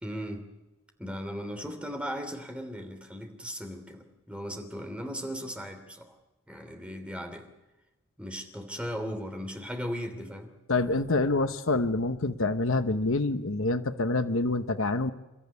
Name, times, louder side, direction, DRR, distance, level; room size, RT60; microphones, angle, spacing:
voice 1, 0.0-0.4 1.0-6.1 6.5-7.5 8.2-10.5, equal, 5° right, 5 dB, 3.0 m, -37 dB
voice 2, 10.7-15.1, left 2 dB, 65° left, 10 dB, 1.1 m, -26 dB
29.5 x 14.0 x 9.7 m, 1.0 s
head